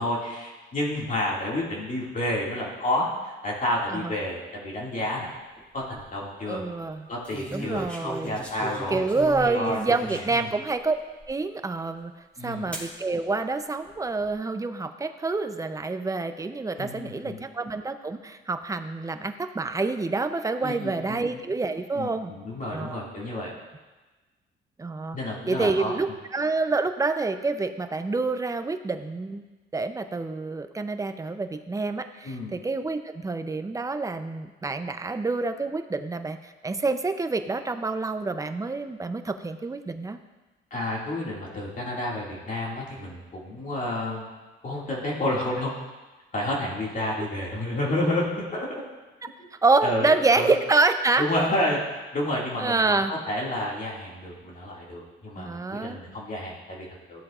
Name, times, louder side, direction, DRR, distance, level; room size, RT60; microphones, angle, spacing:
voice 1, 0.0-5.3 5.7-6.6 7.1-9.1 9.4-9.8 10.1-10.5 12.4-12.7 16.8-17.4 20.6-21.4 21.9-23.5 25.1-25.9 32.2-32.5 40.7-44.3 44.6-45.7 46.3-48.8 49.4-49.5 49.8-50.5 51.2-57.2, left 1 dB, 40° left, -4 dB, 2.2 m, -30 dB
sound 1, 5.6-6.0 7.2-10.6 11.2-11.3 12.7-12.9 13.8-14.3, right 1 dB, 5° left, 2.7 m, -37 dB
voice 2, 6.5-7.1 7.5-8.4 8.9-11.0 11.3-12.1 12.4-22.3 22.6-23.0 24.8-25.2 25.5-29.4 29.7-40.2 49.6-51.2 52.6-53.1 55.4-56.0, right 3 dB, 15° right, 8 dB, 0.6 m, -27 dB
14.5 x 7.6 x 2.5 m, 1.2 s
cardioid pair, 90°, 20 cm